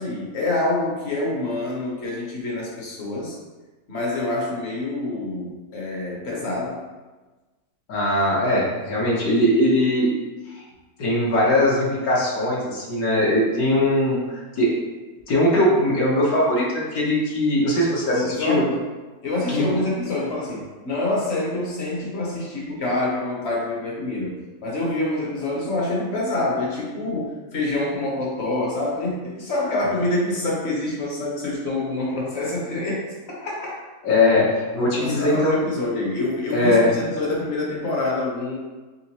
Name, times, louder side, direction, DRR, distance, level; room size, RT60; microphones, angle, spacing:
voice 1, 0.0-3.4 3.9-6.8 18.1-18.8 19.2-33.8 35.0-38.6, left 2 dB, 50° left, -3 dB, 1.0 m, -26 dB
voice 2, 7.9-10.1 10.6-10.7 11.0-14.8 15.3-18.6 19.5-19.6 34.0-35.5 36.5-36.9, left 1 dB, 70° left, -5 dB, 1.4 m, -20 dB
4.2 x 3.7 x 2.9 m, 1.2 s
omnidirectional pair, 1.7 m